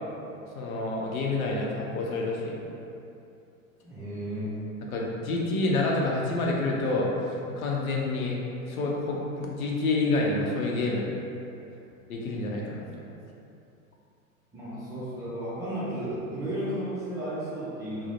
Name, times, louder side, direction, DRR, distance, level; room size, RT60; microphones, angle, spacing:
voice 1, 0.6-2.6 4.9-7.1 7.5-8.3 8.6-11.1 12.1-13.1, left 2 dB, 80° left, -2 dB, 0.6 m, -28 dB
voice 2, 3.8-4.6 14.5-18.1, right 1 dB, 10° right, -12 dB, 0.3 m, -33 dB
2.4 x 2.0 x 3.0 m, 2.7 s
hypercardioid pair, 95°, 41 cm